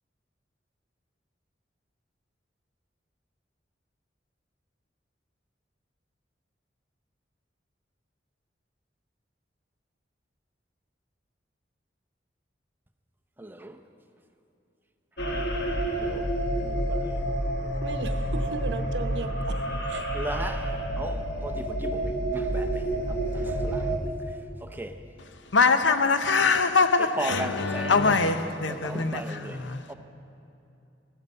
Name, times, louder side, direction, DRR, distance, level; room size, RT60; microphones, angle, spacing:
voice 1, 13.4-13.8 16.0-16.2 16.6-17.1 20.1-20.7 21.0-22.8 23.1-24.1 24.6-24.9 27.2-28.1 28.7-29.6 29.9-30.0, right 1 dB, 10° right, 0.6 m, -37 dB
sound 1, 15.2-24.0, right 1 dB, 60° left, 1.2 m, -29 dB
voice 2, 17.8-20.1, right 2 dB, 65° right, 0.8 m, -36 dB
voice 3, 25.5-29.8, left 4 dB, 80° left, 0.7 m, -23 dB
15.5 x 12.5 x 5.5 m
head